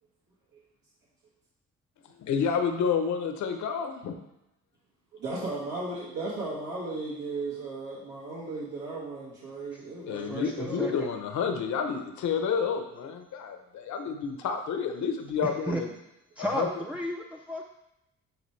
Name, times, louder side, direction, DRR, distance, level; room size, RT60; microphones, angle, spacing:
voice 1, 2.2-4.2 10.1-15.9 16.4-16.7, left 6 dB, 70° left, 6 dB, 1.0 m, -29 dB
voice 2, 5.1-10.9, right 3 dB, 80° right, -8 dB, 1.9 m, -36 dB
voice 3, 10.1-11.1 15.4-15.8 16.4-17.6, equal, 5° right, 0 dB, 0.5 m, -34 dB
10.0 x 3.6 x 3.3 m, 0.87 s
cardioid pair, 90°, 30 cm